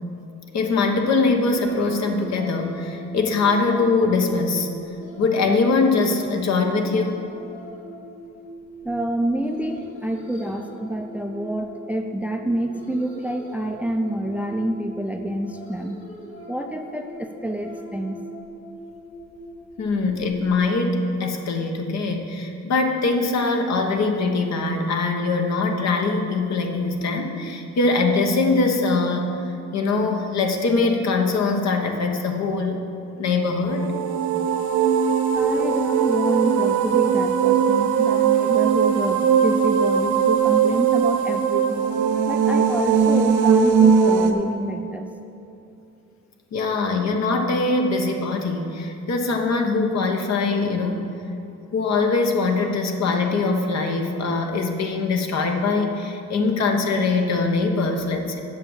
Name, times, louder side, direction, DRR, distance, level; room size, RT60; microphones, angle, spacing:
voice 1, 0.5-4.7 5.2-7.2 19.8-29.3 29.7-32.8 33.2-33.9 46.5-51.0 51.7-58.4, left 3 dB, 60° left, 3 dB, 1.2 m, -22 dB
sound 1, 1.1-20.6, equal, 40° left, 2.4 m, -41 dB
voice 2, 8.8-16.0 16.5-18.2 35.3-41.9 42.3-45.1, right 1 dB, 5° right, 5 dB, 0.5 m, -27 dB
sound 2, 33.7-44.3, right 7 dB, 75° right, 0.8 m, -19 dB
7.8 x 6.2 x 7.2 m, 2.8 s
cardioid pair, 90°, 30 cm